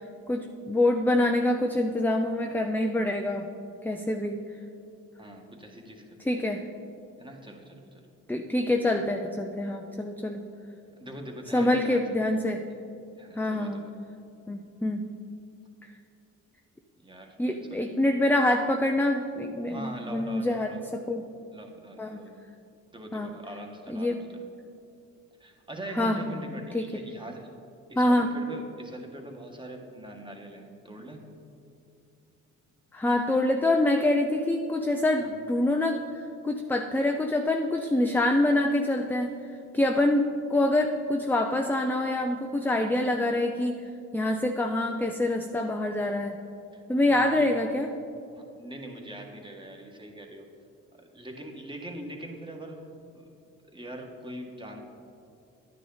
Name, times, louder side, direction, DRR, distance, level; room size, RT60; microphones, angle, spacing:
voice 1, 0.3-3.5 3.8-4.4 6.2-6.6 8.3-10.5 11.5-12.6 13.4-13.8 14.5-15.1 17.4-21.2 22.0-22.2 23.1-23.4 23.9-24.2 25.9-26.3 26.7-26.8 28.0-28.3 32.9-36.0 36.4-39.3 39.7-43.8 44.1-46.4 46.9-47.9, left 1 dB, 5° left, 4 dB, 0.5 m, -26 dB
voice 2, 5.2-6.0 6.3-6.4 7.2-8.0 11.0-12.0 13.2-13.9 17.0-17.4 17.7-18.0 19.7-20.8 21.5-22.4 22.9-24.3 25.4-27.6 27.9-31.3 35.2-35.3 46.7-46.8 47.1-47.5 48.3-50.4 51.0-52.8 53.1-53.3 53.7-54.8, right 1 dB, 15° right, 1 dB, 1.6 m, -42 dB
11.0 x 9.5 x 4.0 m, 2.6 s
cardioid pair, 90°, 30 cm